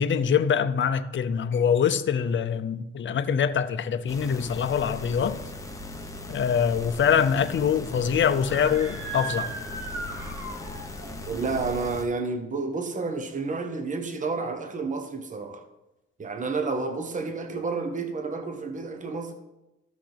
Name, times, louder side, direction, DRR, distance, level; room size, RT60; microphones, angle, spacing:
voice 1, 0.0-5.4 6.3-9.5, left 7 dB, 40° left, 0.6 m, -24 dB
sound 1, 4.1-12.1, left 2 dB, 10° left, 1.0 m, -39 dB
Screaming, 8.3-11.1, right 3 dB, 45° right, 2.8 m, -37 dB
voice 2, 11.3-15.6 16.2-19.3, right 4 dB, 25° right, 1.0 m, -30 dB
14.5 x 5.8 x 3.4 m
cardioid pair, 90°, 30 cm